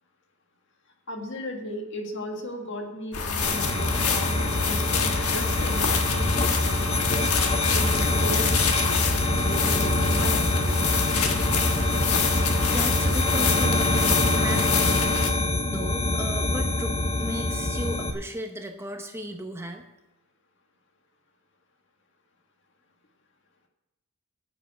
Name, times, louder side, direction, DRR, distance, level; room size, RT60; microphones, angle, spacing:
voice 1, 1.1-6.8 7.3-10.8, left 1 dB, 55° left, 2 dB, 1.8 m, -36 dB
sound 1, 3.1-15.3, left 4 dB, 85° left, 1.4 m, -26 dB
sound 2, 3.4-18.1, left 2 dB, 25° left, 0.8 m, -25 dB
voice 2, 12.7-15.2 15.7-19.8, right 1 dB, 10° right, 5 dB, 0.8 m, -35 dB
9.4 x 7.4 x 8.2 m, 0.96 s
head